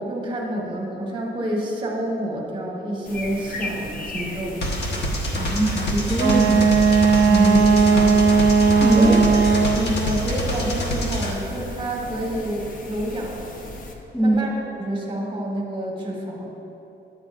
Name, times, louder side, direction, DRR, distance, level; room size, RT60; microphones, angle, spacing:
voice 1, 0.0-4.6 7.3-8.3 9.0-9.2 9.5-13.4 14.2-16.5, right 1 dB, 25° right, -2 dB, 1.3 m, -28 dB
sound 1, 3.0-13.9, left 1 dB, 45° left, 0.8 m, -37 dB
sound 2, 4.6-11.3, equal, 65° left, 1.2 m, -26 dB
voice 2, 5.4-6.8 8.8-9.2 14.1-14.4, right 1 dB, 5° left, -5 dB, 0.6 m, -22 dB
Wind instrument woodwind instrument, 6.2-9.9, right 5 dB, 80° right, 0.6 m, -17 dB
10.5 x 8.0 x 2.5 m, 2.9 s
cardioid pair, 130°, 19 cm